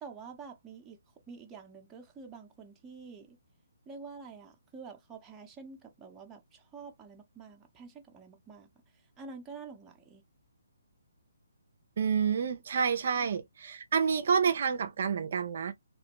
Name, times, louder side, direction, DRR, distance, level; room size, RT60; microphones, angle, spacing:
voice 1, 0.0-1.0 1.3-3.4 3.9-8.7 9.2-10.2 13.2-13.3, right 5 dB, 15° right, 0.7 m, -48 dB
voice 2, 12.0-15.7, right 6 dB, 55° right, 0.5 m, -28 dB
3.0 x 2.1 x 2.9 m
hypercardioid pair, 145°, 0 cm